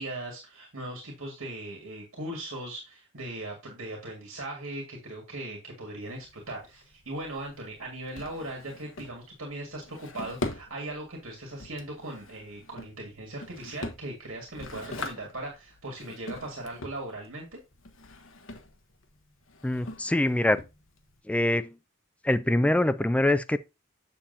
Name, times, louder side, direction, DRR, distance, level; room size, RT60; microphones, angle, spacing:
voice 1, 0.0-17.6, right 1 dB, 70° right, 2.1 m, -39 dB
Drawer open or close, 6.0-21.2, left 2 dB, 70° left, 1.2 m, -42 dB
voice 2, 19.6-20.6 21.2-21.8 22.2-23.6, left 1 dB, 5° left, 0.4 m, -24 dB
7.3 x 6.7 x 2.7 m
head